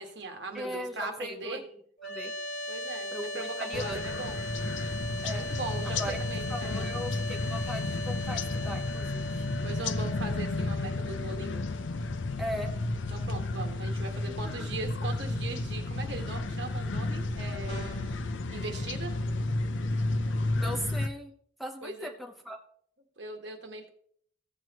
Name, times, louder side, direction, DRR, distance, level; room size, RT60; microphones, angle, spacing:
voice 1, 0.0-1.6 2.7-4.4 5.3-6.9 9.6-11.6 13.1-17.9 18.5-19.1 21.8-22.1 23.2-23.9, right 2 dB, 65° right, 4 dB, 1.6 m, -39 dB
voice 2, 0.5-1.7 2.0-2.3 3.1-4.1 5.2-5.4 5.8-6.2 6.5-9.5 12.4-12.7 14.4-14.5 20.6-21.3 21.6-22.6, equal, ahead, 1 dB, 0.9 m, -38 dB
sound 1, 2.0-13.1, left 1 dB, 60° left, 1.8 m, -39 dB
sound 2, 3.7-21.1, left 2 dB, 90° left, 0.7 m, -32 dB
sound 3, 17.7-18.2, right 1 dB, 35° left, 5.4 m, -42 dB
16.0 x 7.5 x 3.0 m, 0.62 s
head